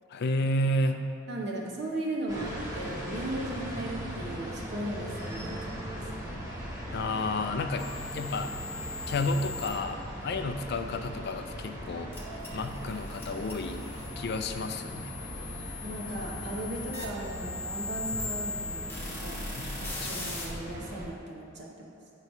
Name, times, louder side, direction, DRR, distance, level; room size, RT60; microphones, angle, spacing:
voice 1, 0.1-1.1 6.9-8.6 9.1-12.1 12.5-13.8 14.2-15.1 18.1-18.3 19.6-20.2, left 2 dB, 50° left, 7 dB, 0.4 m, -31 dB
voice 2, 1.3-5.7 15.8-19.4 19.8-21.9, right 1 dB, 55° right, -2 dB, 0.9 m, -37 dB
sound 1, 2.3-21.1, equal, 15° right, 1.1 m, -39 dB
sound 2, 7.8-9.7 12.1-20.5, left 3 dB, 10° left, 1.1 m, -40 dB
9.1 x 3.1 x 5.4 m, 2.6 s
head